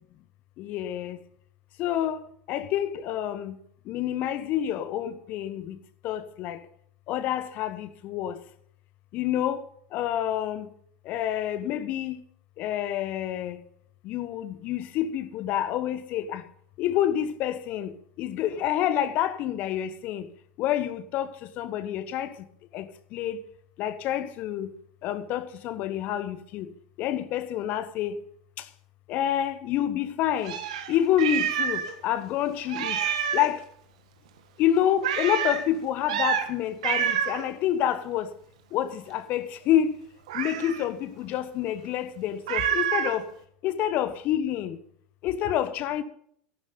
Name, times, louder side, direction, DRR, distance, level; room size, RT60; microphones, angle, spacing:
voice 1, 0.6-1.2 1.8-2.2 2.5-3.6 3.9-6.6 7.1-8.4 9.1-9.6 9.9-10.7 11.0-12.2 12.6-13.6 14.0-16.4 16.8-20.3 20.6-22.3 22.7-23.4 23.8-24.7 25.0-26.7 27.0-28.2 28.6-28.7 29.1-30.6 30.9-33.0 33.3-33.6 34.6-38.3 38.7-40.0 40.3-43.3 43.6-44.8 45.2-46.0, left 11 dB, 50° left, 1.0 m, -28 dB
Meow, 30.4-31.9 32.2-32.3 32.7-33.6 35.0-35.6 36.1-36.5 36.8-37.4 40.3-40.9 42.5-43.2, right 8 dB, 70° right, 1.4 m, -27 dB
14.5 x 11.5 x 3.9 m
hypercardioid pair, 80°, 4 cm